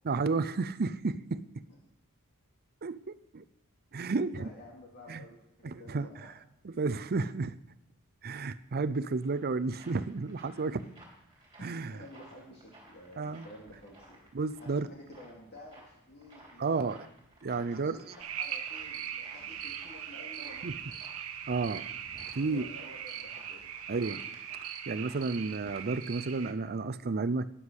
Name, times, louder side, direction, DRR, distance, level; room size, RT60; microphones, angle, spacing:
voice 1, 0.0-1.5 2.8-3.4 3.9-4.5 5.1-5.2 5.6-6.1 6.6-7.6 8.2-10.8 11.6-12.0 13.2-13.5 14.3-14.9 16.6-17.0 17.4-18.1 20.6-20.8 21.5-21.9 22.3-22.7 23.9-24.2 24.9-27.5, right 4 dB, 45° right, 13 dB, 0.6 m, -32 dB
voice 2, 4.4-6.3 11.6-14.2 14.6-16.9 17.5-20.9 22.3-23.6, equal, 50° left, -3 dB, 2.7 m, -51 dB
sound 1, 9.2-25.9, right 1 dB, 20° right, 3.9 m, -57 dB
sound 2, 18.2-26.5, right 9 dB, 70° right, 1.1 m, -40 dB
12.5 x 10.0 x 6.4 m, 0.82 s
head